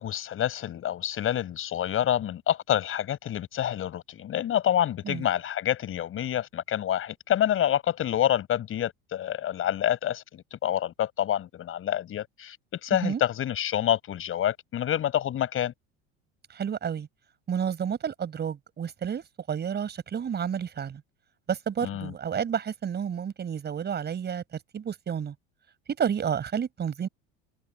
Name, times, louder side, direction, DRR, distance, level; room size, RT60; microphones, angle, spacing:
voice 1, 0.0-12.6 12.8-15.7 21.8-22.1, left 11 dB, 45° left, 6.7 m, -27 dB
voice 2, 16.5-17.1 17.5-21.0 21.5-24.4 24.7-25.3 26.0-27.1, right 8 dB, 35° right, 5.3 m, -30 dB
supercardioid pair, 110°, 31 cm